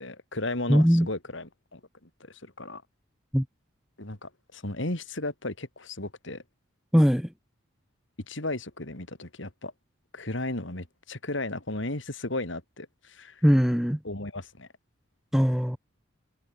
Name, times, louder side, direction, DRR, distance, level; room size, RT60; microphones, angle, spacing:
voice 1, 0.0-2.8 4.0-6.4 8.3-9.7 10.1-13.4 14.0-14.7, left 2 dB, 65° left, 2.9 m, -35 dB
voice 2, 0.7-1.1 3.3-3.4 6.9-7.3 13.4-14.0 15.3-15.8, equal, ahead, 1.0 m, -20 dB
head